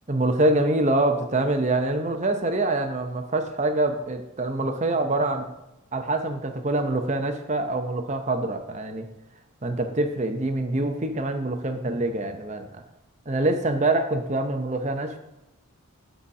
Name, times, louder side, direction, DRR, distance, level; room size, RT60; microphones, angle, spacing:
voice 1, 0.1-5.5 5.9-9.1 9.6-12.8 13.3-15.2, right 2 dB, 30° right, 6 dB, 0.7 m, -25 dB
7.9 x 4.2 x 5.9 m, 0.95 s
head